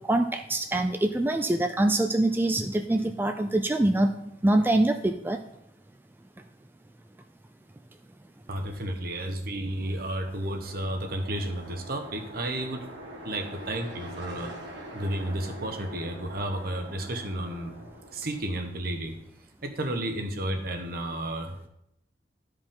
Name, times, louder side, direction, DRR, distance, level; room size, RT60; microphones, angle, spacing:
voice 1, 0.1-4.1 4.4-5.4, right 1 dB, 10° right, 5 dB, 0.4 m, -24 dB
voice 2, 8.5-12.9 13.2-14.5 14.9-17.7 18.1-19.2 19.6-21.6, right 1 dB, 60° right, 4 dB, 1.2 m, -32 dB
sound 1, 9.8-18.9, equal, 80° right, 2.0 m, -44 dB
12.5 x 4.9 x 3.8 m, 0.80 s
head